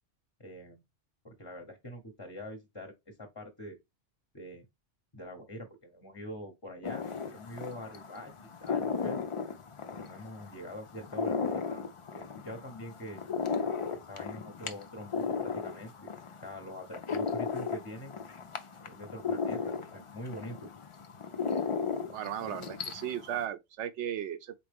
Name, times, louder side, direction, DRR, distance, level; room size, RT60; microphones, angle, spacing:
voice 1, 0.4-0.8 1.2-3.8 4.3-4.7 5.1-8.3 8.6-9.2 9.9-11.8 12.1-13.2 13.9-16.1 16.4-18.1 18.8-20.6, equal, 25° left, 0.8 m, -44 dB
sound 1, 6.8-23.4, left 5 dB, 50° left, 0.4 m, -36 dB
voice 2, 22.1-24.5, right 10 dB, 80° right, 0.9 m, -36 dB
4.2 x 3.7 x 3.4 m
omnidirectional pair, 1.2 m